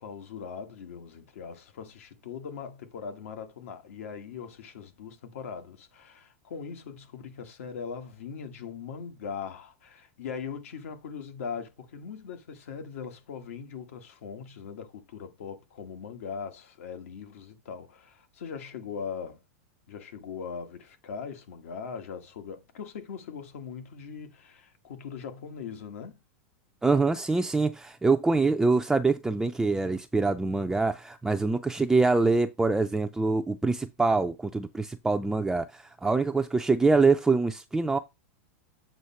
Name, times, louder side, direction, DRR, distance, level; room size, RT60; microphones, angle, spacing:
voice 1, 0.0-19.4 19.9-26.2, left 6 dB, 80° left, 1.5 m, -40 dB
voice 2, 26.8-38.0, right 3 dB, 5° right, 0.4 m, -25 dB
7.8 x 3.1 x 5.7 m
supercardioid pair, 140°, 7 cm